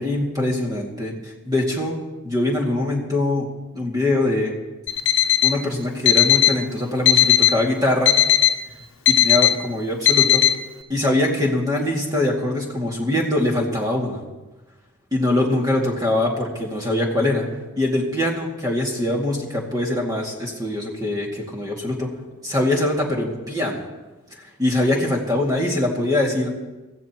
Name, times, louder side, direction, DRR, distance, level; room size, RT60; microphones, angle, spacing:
voice 1, 0.0-2.0 2.2-3.5 3.7-4.5 5.4-8.2 9.1-10.5 10.9-14.2 15.1-17.5 17.8-22.1 22.4-23.8 24.3-26.5, left 1 dB, 15° right, -1 dB, 2.3 m, -23 dB
Alarm, 4.9-5.6 6.1-6.6 7.1-7.6 8.1-8.6 9.1-9.6 10.1-10.6, left 11 dB, 70° left, 0.9 m, -16 dB
22.5 x 15.0 x 3.0 m, 1.1 s
head